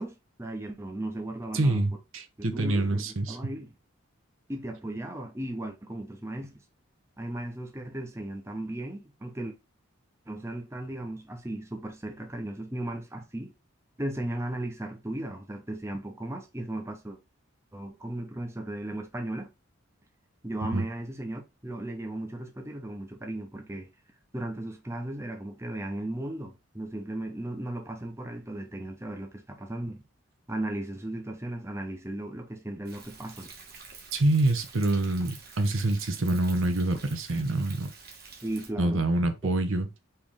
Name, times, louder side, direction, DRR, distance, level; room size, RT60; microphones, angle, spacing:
voice 1, 0.0-1.8 2.4-3.7 4.5-6.6 7.2-9.6 10.3-13.5 14.0-17.2 17.7-19.5 20.4-23.9 24.3-30.0 30.5-33.5 38.4-39.1, right 1 dB, 15° right, 0.7 m, -36 dB
voice 2, 1.5-3.4 20.7-20.8 34.1-37.9 38.8-39.9, right 2 dB, 70° right, 0.8 m, -26 dB
Thunder, 32.9-38.7, right 4 dB, 45° right, 1.3 m, -48 dB
4.6 x 3.1 x 3.6 m
head